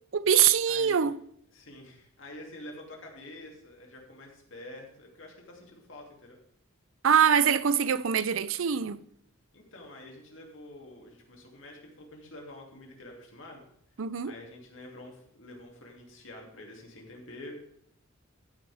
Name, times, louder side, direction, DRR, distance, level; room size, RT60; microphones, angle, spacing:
voice 1, 0.1-1.2 7.0-9.0 14.0-14.3, right 8 dB, 70° right, 0.5 m, -23 dB
voice 2, 0.7-1.0 1.5-6.4 9.5-13.6 14.2-17.5, left 1 dB, 65° left, 2.8 m, -47 dB
14.0 x 9.2 x 3.5 m
head